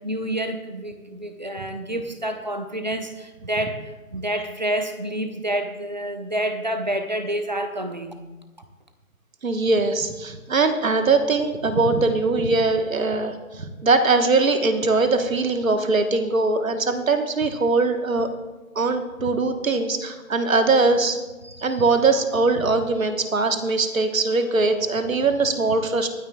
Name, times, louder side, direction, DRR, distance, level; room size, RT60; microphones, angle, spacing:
voice 1, 0.0-8.2 9.6-9.7 21.4-21.8, right 1 dB, 30° right, 7 dB, 0.7 m, -28 dB
voice 2, 9.4-18.3 18.7-21.2 21.6-26.1, right 3 dB, 65° right, 7 dB, 1.3 m, -21 dB
26.0 x 9.1 x 2.3 m, 1.2 s
hypercardioid pair, 175°, 43 cm